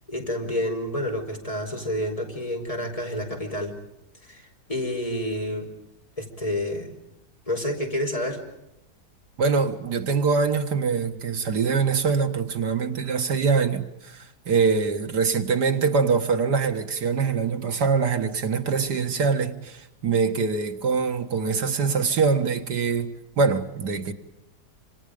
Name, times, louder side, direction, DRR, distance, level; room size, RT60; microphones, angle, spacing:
voice 1, 0.1-3.8 4.2-5.7 6.2-7.0 7.5-8.4, left 1 dB, 20° left, 5.2 m, -29 dB
voice 2, 9.4-24.1, right 5 dB, 80° right, 2.3 m, -24 dB
27.5 x 27.0 x 5.2 m
omnidirectional pair, 1.8 m